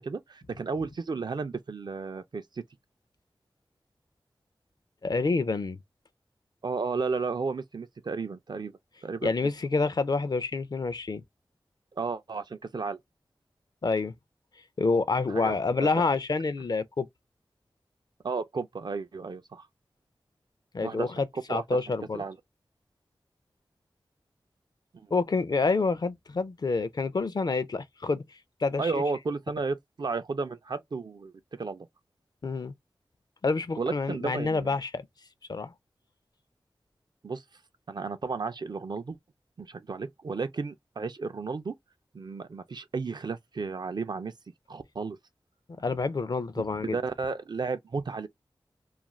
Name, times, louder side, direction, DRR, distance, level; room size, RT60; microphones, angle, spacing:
voice 1, 0.0-2.6 6.6-8.7 9.0-9.3 12.0-13.0 15.3-15.5 18.2-19.7 20.8-21.1 21.3-21.6 22.1-22.4 24.9-25.1 28.8-31.9 33.8-34.7 37.2-37.4 37.9-39.2 39.6-41.7 42.1-44.3 44.7-45.2 46.9-48.3, right 4 dB, 55° right, 0.4 m, -33 dB
voice 2, 5.0-5.8 9.2-11.2 13.8-14.1 14.8-17.1 20.7-22.2 25.1-28.2 28.6-29.0 32.4-32.7 33.4-35.0 35.5-35.7 45.8-47.0, left 3 dB, 50° left, 0.4 m, -28 dB
2.4 x 2.3 x 3.0 m
wide cardioid pair, 60°, 9 cm